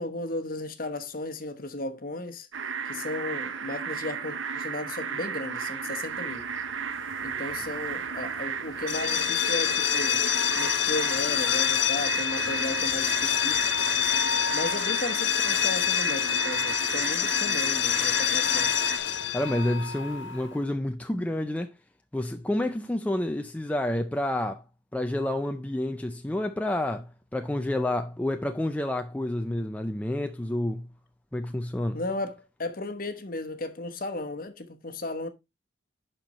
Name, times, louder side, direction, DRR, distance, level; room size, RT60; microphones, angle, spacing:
voice 1, 0.0-2.5 2.9-6.4 7.2-10.2 10.5-13.6 14.5-18.7 31.9-35.3, left 2 dB, 45° left, 1.0 m, -35 dB
sound 1, 2.5-19.0, right 6 dB, 75° right, 0.8 m, -34 dB
sound 2, 5.9-16.7, right 1 dB, 35° right, 3.4 m, -54 dB
sound 3, 8.8-20.5, left 10 dB, 65° left, 0.6 m, -26 dB
voice 2, 19.3-21.7 22.1-24.6 24.9-30.9 31.3-32.0, left 1 dB, 5° left, 0.4 m, -29 dB
11.5 x 4.4 x 2.9 m
head